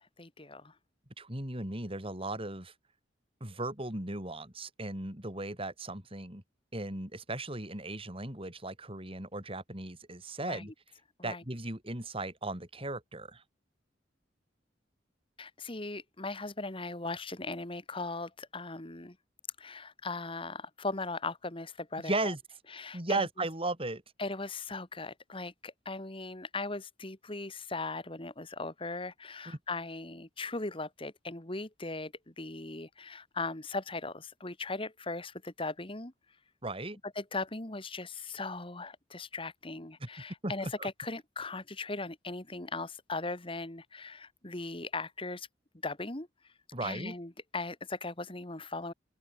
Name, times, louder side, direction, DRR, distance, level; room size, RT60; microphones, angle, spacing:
voice 1, 0.2-0.7 10.4-10.7 11.2-11.4 15.4-19.2 19.6-22.3 22.7-23.3 24.2-36.1 37.0-45.5 45.8-46.3 46.8-48.9, left 3 dB, 30° left, 2.3 m, -39 dB
voice 2, 1.2-2.7 3.4-6.4 6.7-10.7 11.2-13.4 22.0-22.4 22.9-24.0 29.5-29.6 36.6-37.0 40.0-40.1 40.4-40.9 46.7-47.1, right 2 dB, 30° right, 5.6 m, -36 dB
open air
head